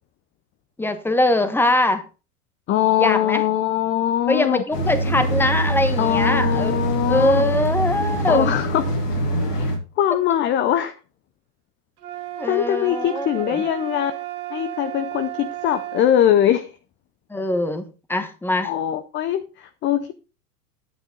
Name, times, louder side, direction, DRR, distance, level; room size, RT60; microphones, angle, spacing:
voice 1, 0.8-2.0 3.0-3.4 4.3-6.7 7.1-8.5 12.4-13.6 17.3-18.7, left 1 dB, 5° left, 9 dB, 1.2 m, -22 dB
voice 2, 2.7-4.6 6.0-7.5 8.3-8.8 9.5-9.7 10.0-10.9 12.4-14.1 14.5-16.7 18.6-20.1, left 11 dB, 25° left, 12 dB, 0.6 m, -21 dB
sound 1, 4.7-9.8, right 1 dB, 80° left, 4.1 m, -23 dB
sound 2, 12.0-16.1, right 15 dB, 70° right, 1.9 m, -33 dB
9.7 x 7.8 x 3.9 m, 0.32 s
hypercardioid pair, 105°, 47 cm